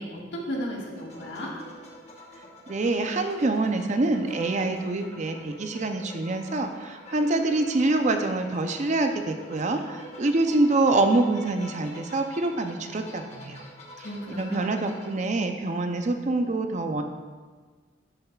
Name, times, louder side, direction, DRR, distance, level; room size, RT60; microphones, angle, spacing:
voice 1, 0.0-1.5 14.0-14.7, equal, 70° left, -3 dB, 1.6 m, -34 dB
sound 1, 1.0-15.1, left 1 dB, 35° left, 1.1 m, -47 dB
voice 2, 2.7-13.6 14.0-17.0, right 2 dB, 40° right, 6 dB, 0.5 m, -26 dB
11.0 x 6.9 x 2.3 m, 1.5 s
head